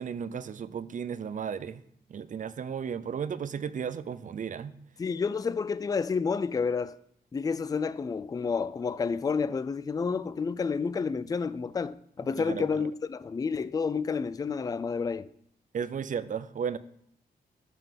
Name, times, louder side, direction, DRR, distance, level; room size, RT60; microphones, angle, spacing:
voice 1, 0.0-1.8 2.1-4.7 12.4-12.9 15.7-16.8, right 7 dB, 50° right, 0.5 m, -34 dB
voice 2, 5.0-7.0 7.3-15.3, left 5 dB, 20° left, 0.3 m, -30 dB
12.5 x 5.7 x 5.8 m
wide cardioid pair, 155°, 17 cm